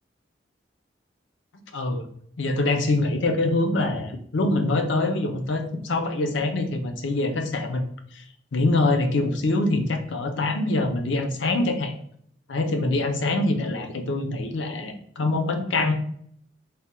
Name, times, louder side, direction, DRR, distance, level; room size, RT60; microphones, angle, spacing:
voice 1, 1.7-2.1 2.4-8.2 8.5-11.9 12.5-15.9, left 2 dB, 75° left, 5 dB, 0.5 m, -24 dB
3.4 x 2.2 x 4.3 m, 0.65 s
head